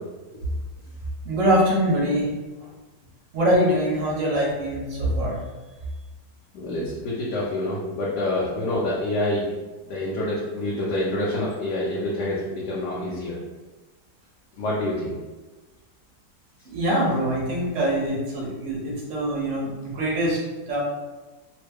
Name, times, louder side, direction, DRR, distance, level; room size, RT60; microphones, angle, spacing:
voice 1, 1.2-2.3 3.3-5.4 16.6-20.8, equal, 55° right, -4 dB, 1.0 m, -23 dB
voice 2, 6.5-9.6 9.9-13.4 14.6-15.2, left 1 dB, 75° left, -6 dB, 1.2 m, -27 dB
3.1 x 2.1 x 3.3 m, 1.2 s
omnidirectional pair, 1.8 m